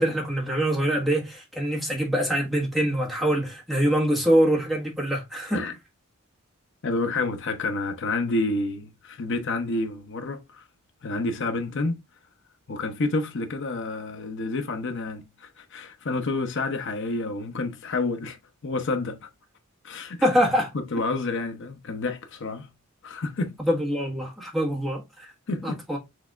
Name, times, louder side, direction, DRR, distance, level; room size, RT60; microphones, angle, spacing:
voice 1, 0.0-5.6 20.2-20.7 23.6-25.3 25.6-26.0, equal, ahead, 1.4 m, -24 dB
voice 2, 6.8-10.6 11.0-12.0 12.7-18.4 18.6-19.3 19.8-20.3 20.7-22.7 23.0-23.6 25.5-25.8, left 2 dB, 60° left, 0.7 m, -29 dB
6.2 x 3.4 x 2.4 m
head